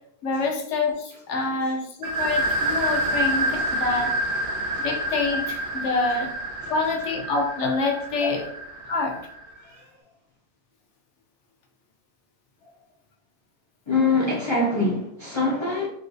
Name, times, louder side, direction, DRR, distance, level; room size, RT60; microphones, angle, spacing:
voice 1, 0.2-4.1 4.8-6.3 6.7-8.5 8.9-9.2, left 3 dB, 85° left, 2 dB, 1.0 m, -26 dB
sound 1, 2.0-9.5, right 1 dB, 90° right, 1.1 m, -28 dB
voice 2, 13.9-15.9, left 3 dB, 40° left, -4 dB, 0.4 m, -24 dB
3.9 x 2.3 x 2.5 m, 0.72 s
omnidirectional pair, 1.2 m